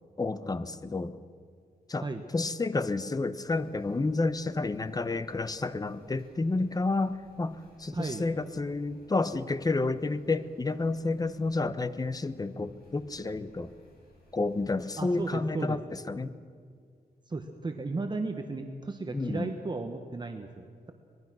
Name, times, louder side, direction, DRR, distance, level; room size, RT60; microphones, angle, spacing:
voice 1, 0.2-1.2 1.9-2.1 2.3-13.7 14.3-16.3 19.1-19.5, left 3 dB, 20° left, 13 dB, 0.9 m, -30 dB
sound 1, 3.4-15.3, left 1 dB, 65° left, 7.4 m, -61 dB
voice 2, 7.9-8.2 15.0-15.8 17.3-20.9, right 3 dB, 25° right, 5 dB, 1.3 m, -35 dB
25.0 x 21.5 x 6.2 m, 2.1 s
wide cardioid pair, 115°, 17 cm